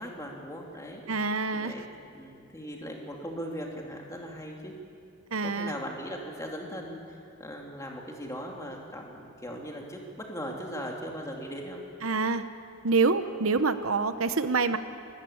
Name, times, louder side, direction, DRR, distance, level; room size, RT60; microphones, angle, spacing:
voice 1, 0.0-1.0 1.5-4.7 5.4-11.8, equal, 15° left, 0 dB, 2.7 m, -39 dB
voice 2, 1.1-1.7 5.3-5.7 12.0-12.4 12.8-14.8, right 4 dB, 80° right, 10 dB, 1.0 m, -26 dB
25.0 x 14.5 x 8.6 m, 2.4 s
head